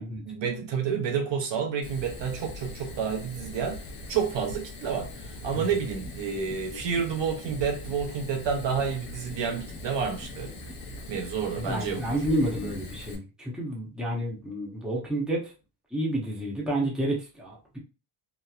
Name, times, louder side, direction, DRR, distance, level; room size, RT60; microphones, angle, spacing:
voice 1, 0.3-10.5 11.1-12.2, right 6 dB, 60° right, 0.6 m, -30 dB
Fire, 1.8-13.1, left 2 dB, 80° left, 0.9 m, -41 dB
sound 1, 5.6-6.2 6.5-7.1 7.4-8.0 8.3-8.9 9.3-9.9 10.2-10.8 11.1-11.7 12.1-12.7, left 3 dB, 40° left, 1.2 m, -46 dB
voice 2, 11.6-15.5 15.9-17.8, right 1 dB, ahead, 0.9 m, -30 dB
2.9 x 2.0 x 2.4 m
cardioid pair, 105°, 50 cm